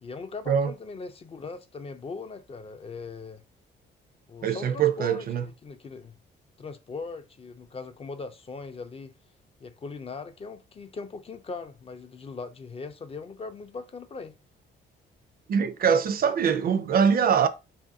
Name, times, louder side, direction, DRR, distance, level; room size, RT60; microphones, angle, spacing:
voice 1, 0.0-3.4 4.3-6.2 6.6-9.1 9.6-14.3, left 4 dB, 30° left, 0.4 m, -40 dB
voice 2, 4.4-5.4 15.5-17.5, right 7 dB, 50° right, 0.4 m, -23 dB
3.0 x 2.5 x 2.6 m
cardioid pair, 90°, 20 cm